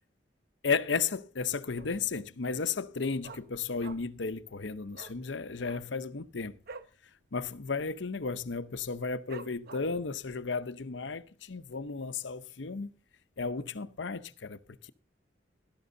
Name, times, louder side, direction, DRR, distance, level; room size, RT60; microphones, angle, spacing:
voice 1, 0.6-6.6 7.3-12.9 13.4-14.9, left 4 dB, 70° left, 0.8 m, -34 dB
Dog, 1.7-2.2 2.5-2.6 2.8-4.3 4.5-4.7 4.9-5.2 5.6-7.0 7.3-7.5 7.8-8.2 8.6-8.7 9.3-10.1 10.6-10.7, right 4 dB, 55° right, 0.9 m, -47 dB
17.5 x 12.5 x 2.7 m
head